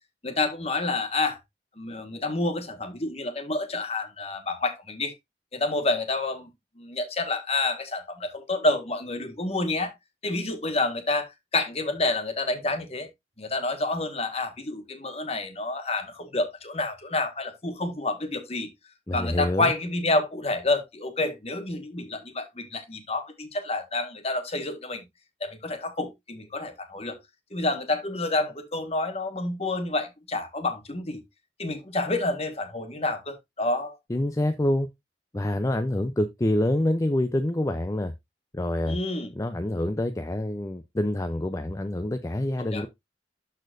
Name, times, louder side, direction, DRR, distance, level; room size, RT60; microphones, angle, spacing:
voice 1, 0.2-1.4 1.8-5.1 5.5-6.5 6.8-9.9 10.2-13.1 13.4-18.7 19.1-25.0 25.4-27.2 27.5-31.2 31.6-34.0 38.9-39.3 42.6-42.8, left 2 dB, 35° left, 1.5 m, -28 dB
voice 2, 19.1-19.7 34.1-34.9 35.3-38.1 38.5-39.0 39.4-42.9, left 1 dB, 20° left, 0.5 m, -26 dB
12.5 x 4.3 x 2.5 m
head